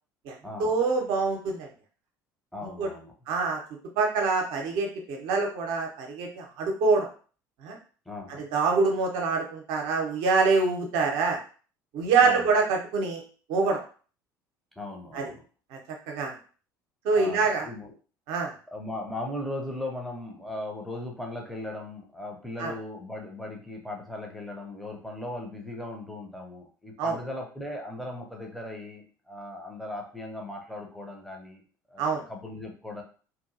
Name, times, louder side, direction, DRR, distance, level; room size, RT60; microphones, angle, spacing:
voice 1, 0.2-1.7 2.8-2.9 3.3-3.6 4.0-7.1 7.6-7.8 8.3-11.4 11.9-13.2 13.5-13.8 15.1-15.3 15.7-15.8 16.1-16.4 17.0-17.7 18.3-18.5 22.6-22.7 27.0-27.2 32.0-32.2, right 4 dB, 55° right, 2 dB, 0.8 m, -25 dB
voice 2, 2.5-3.1 8.1-8.5 12.2-12.5 14.8-15.4 17.2-17.9 18.7-31.6 31.9-33.0, left 1 dB, ahead, 1 dB, 0.8 m, -38 dB
2.9 x 2.6 x 2.6 m, 0.39 s
figure-of-eight pair, 60°, 11 cm